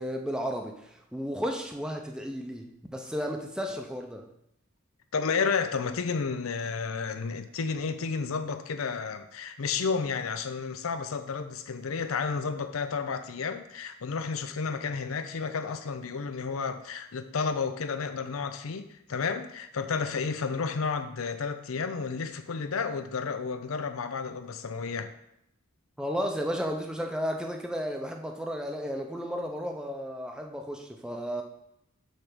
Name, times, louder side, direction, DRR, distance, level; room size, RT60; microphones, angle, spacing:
voice 1, 0.0-4.2 26.0-31.4, equal, 5° right, 2 dB, 0.6 m, -33 dB
voice 2, 5.1-25.1, left 5 dB, 75° left, 9 dB, 0.6 m, -31 dB
6.6 x 3.4 x 6.0 m, 0.79 s
head